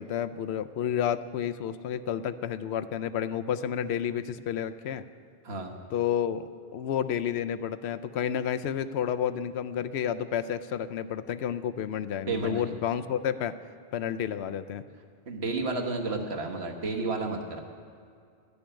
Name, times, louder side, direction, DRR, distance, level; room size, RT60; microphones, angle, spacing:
voice 1, 0.0-5.0 5.9-13.6 13.9-14.8, left 9 dB, 90° left, 12 dB, 0.8 m, -30 dB
voice 2, 12.3-12.7 15.3-17.6, right 3 dB, 80° right, 2 dB, 1.5 m, -31 dB
12.5 x 6.9 x 9.9 m, 2.3 s
omnidirectional pair, 1.1 m